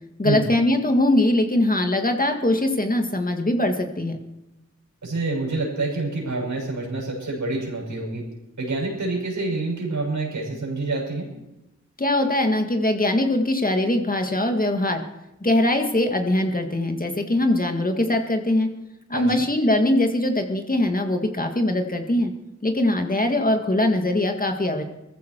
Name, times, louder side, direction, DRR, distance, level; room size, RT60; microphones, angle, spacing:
voice 1, 0.2-4.2 12.0-15.0 15.4-18.7 19.1-22.3 22.6-24.8, left 1 dB, 30° left, 4 dB, 2.0 m, -22 dB
voice 2, 5.0-8.2 8.6-11.3 19.1-19.3, right 3 dB, 85° right, -2 dB, 6.6 m, -27 dB
20.0 x 15.0 x 4.7 m, 0.93 s
wide cardioid pair, 60°, 29 cm